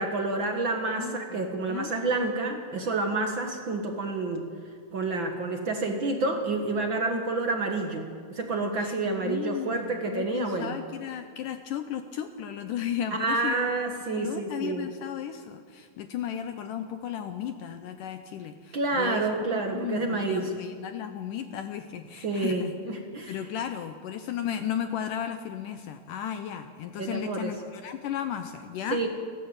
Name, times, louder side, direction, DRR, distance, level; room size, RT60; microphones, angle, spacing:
voice 1, 0.0-4.4 4.9-10.7 13.1-14.9 18.7-20.5 22.2-23.4 27.0-27.5 28.9-29.1, right 3 dB, 65° right, 3 dB, 1.2 m, -29 dB
voice 2, 0.9-1.9 8.8-8.9 9.2-13.7 14.1-22.7 23.3-29.0, left 9 dB, 75° left, 8 dB, 2.0 m, -35 dB
29.5 x 12.5 x 8.1 m, 2.1 s
omnidirectional pair, 4.5 m